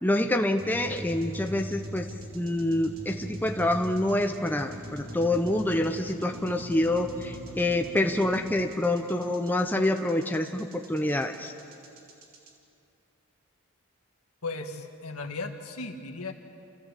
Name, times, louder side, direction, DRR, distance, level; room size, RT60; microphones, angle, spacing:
voice 1, 0.0-2.1 2.3-11.5, left 1 dB, 10° left, 4 dB, 0.8 m, -27 dB
sound 1, 0.6-12.5, equal, 80° right, 3.1 m, -41 dB
voice 2, 14.4-16.3, left 3 dB, 90° left, 4 dB, 1.8 m, -36 dB
28.5 x 15.0 x 8.2 m, 2.7 s
head